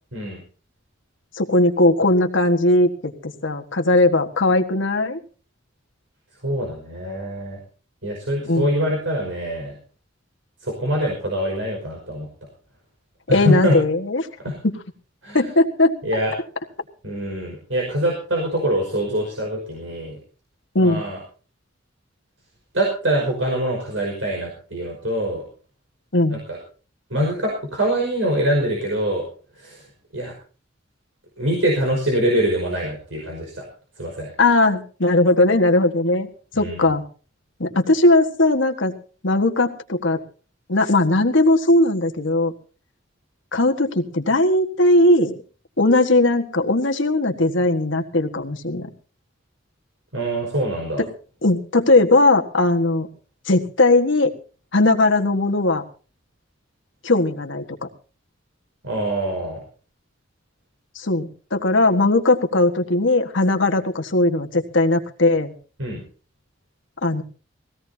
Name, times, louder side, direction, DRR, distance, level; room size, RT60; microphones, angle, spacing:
voice 1, 1.3-5.2 8.5-8.8 13.3-14.3 14.6-14.7 15.3-16.0 20.7-21.0 26.1-26.4 34.4-36.3 36.6-37.0 37.6-38.9 39.2-40.2 40.7-42.5 43.5-45.4 45.8-48.9 51.0-51.1 51.4-53.1 53.5-54.3 54.7-55.8 57.0-57.9 60.9-65.5 67.0-67.2, left 2 dB, 75° left, 5 dB, 1.6 m, -18 dB
voice 2, 6.4-7.6 8.0-9.8 10.6-12.3 13.3-13.8 14.4-14.6 15.2-15.5 16.0-16.3 17.0-20.2 20.8-21.2 22.7-25.4 26.3-26.6 27.1-29.2 29.5-29.9 30.1-30.3 31.4-33.7 34.0-34.3 36.5-37.0 50.1-51.0 58.8-59.6 65.8-66.0, right 1 dB, 85° right, -1 dB, 5.3 m, -24 dB
22.0 x 17.0 x 2.8 m, 0.38 s
head